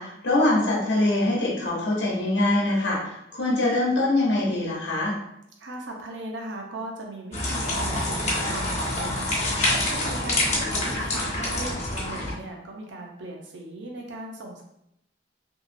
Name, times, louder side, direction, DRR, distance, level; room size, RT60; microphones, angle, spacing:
voice 1, 0.0-5.1, left 2 dB, 75° left, -4 dB, 0.9 m, -23 dB
voice 2, 5.6-14.6, right 2 dB, 85° right, 1 dB, 0.7 m, -38 dB
sound 1, 7.3-12.3, left 1 dB, 40° left, 0.8 m, -26 dB
2.9 x 2.8 x 2.6 m, 0.78 s
head